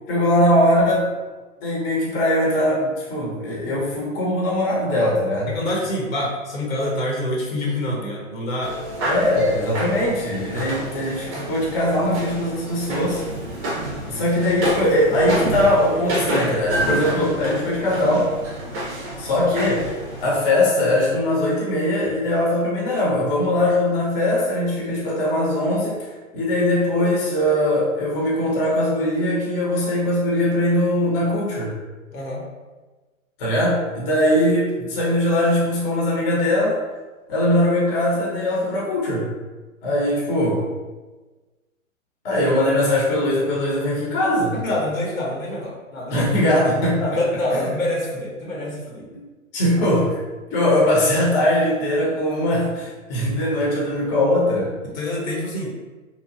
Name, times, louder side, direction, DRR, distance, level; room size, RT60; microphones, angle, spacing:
voice 1, 0.1-1.1 1.6-5.5 9.1-13.2 14.1-18.3 19.2-26.1 26.3-31.7 33.4-36.8 37.3-39.3 39.8-40.7 42.2-44.5 46.1-47.2 47.5-47.6 49.1-49.2 49.5-50.2 50.5-54.8, left 1 dB, 45° left, -5 dB, 0.9 m, -21 dB
voice 2, 5.5-8.7 32.1-32.4 44.5-46.3 47.0-49.1 54.8-55.7, left 1 dB, 75° left, -3 dB, 1.1 m, -26 dB
sound 1, 8.6-20.2, right 1 dB, 20° right, 0.5 m, -28 dB
2.9 x 2.3 x 2.5 m, 1.3 s
hypercardioid pair, 125°, 41 cm